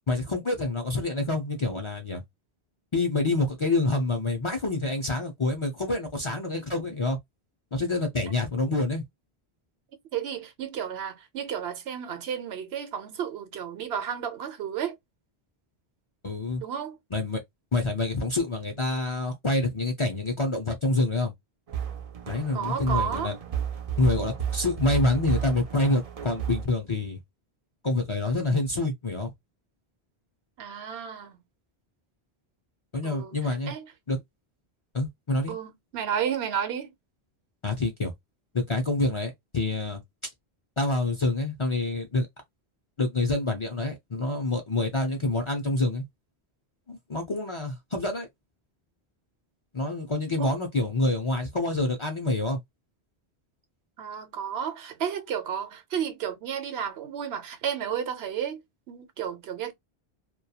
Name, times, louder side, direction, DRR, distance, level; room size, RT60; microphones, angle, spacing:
voice 1, 0.1-2.2 2.9-7.2 7.7-9.0 16.2-16.6 17.1-17.4 17.7-21.3 22.3-23.4 24.0-27.2 27.8-29.3 32.9-33.7 34.1-34.2 34.9-35.5 37.6-38.1 38.5-40.0 40.8-42.3 43.0-46.0 46.9-48.3 49.7-52.6, left 2 dB, 40° left, 0.4 m, -27 dB
voice 2, 10.1-14.9 16.6-17.0 22.5-23.3 30.6-31.4 33.0-33.4 33.7-33.9 35.5-36.9 50.4-50.5 54.0-58.6 58.9-59.7, right 8 dB, 80° right, 0.9 m, -32 dB
sound 1, 21.7-26.6, right 9 dB, 55° right, 0.4 m, -32 dB
2.3 x 2.2 x 2.7 m
omnidirectional pair, 1.0 m